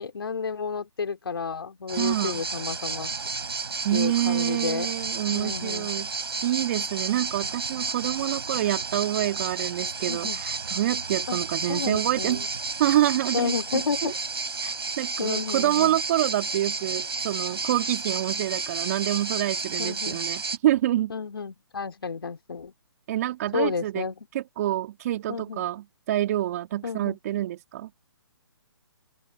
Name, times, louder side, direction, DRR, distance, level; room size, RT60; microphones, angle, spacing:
voice 1, 0.0-3.1 3.9-4.9 5.3-5.9 10.1-10.4 11.3-11.4 11.7-12.5 13.3-14.1 14.6-14.7 15.2-16.0 19.8-20.2 21.1-22.7 23.5-24.3 25.3-25.6 26.8-27.2, left 5 dB, 70° left, 3.8 m, -31 dB
sound 1, 1.9-20.6, right 4 dB, 75° right, 3.6 m, -31 dB
voice 2, 2.0-2.4 3.8-6.1 6.4-12.4 12.8-14.1 15.0-21.1 23.1-24.1 24.3-27.9, right 13 dB, 40° right, 2.5 m, -27 dB
open air
figure-of-eight pair, 140°, 13 cm